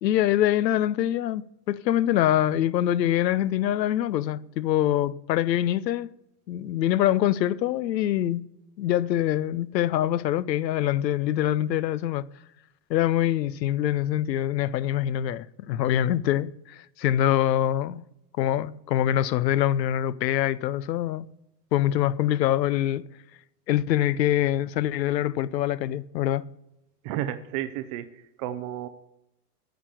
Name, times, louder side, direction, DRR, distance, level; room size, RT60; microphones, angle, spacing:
voice 1, 0.0-6.1 6.5-8.5 8.8-12.3 12.9-18.0 18.4-21.3 21.7-23.1 23.7-26.5, left 12 dB, 90° left, 0.6 m, -24 dB
voice 2, 27.0-28.9, right 12 dB, 25° right, 0.4 m, -32 dB
9.3 x 6.0 x 8.5 m
hypercardioid pair, 125°, 49 cm